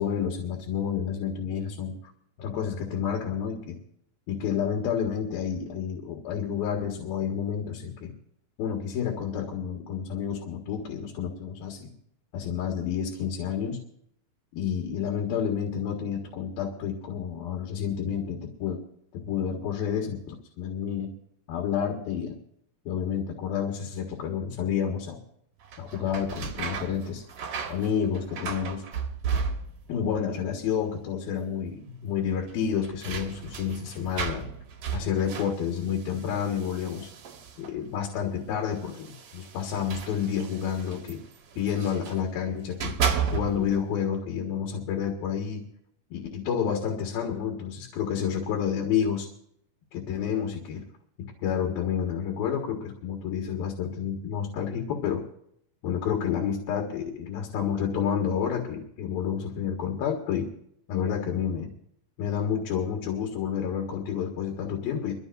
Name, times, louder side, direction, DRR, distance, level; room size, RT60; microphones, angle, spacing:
voice 1, 0.0-1.9 2.4-3.8 4.3-8.1 8.6-11.9 12.3-13.8 14.6-18.8 19.1-21.1 21.5-22.4 22.9-25.2 25.8-27.2 27.7-28.8 29.9-34.5 34.9-37.1 37.6-41.2 41.6-43.0 43.3-45.6 46.1-49.3 49.9-50.8 51.4-55.2 55.8-60.5 60.9-61.7 62.2-65.1, left 8 dB, 90° left, 1 dB, 3.7 m, -29 dB
sound 1, 25.6-30.0 30.3-31.0 31.3-31.4 32.4-37.9 38.7-42.2 42.6-43.8, right 6 dB, 60° right, 1.7 m, -34 dB
23.5 x 15.0 x 2.7 m, 0.67 s
omnidirectional pair, 4.1 m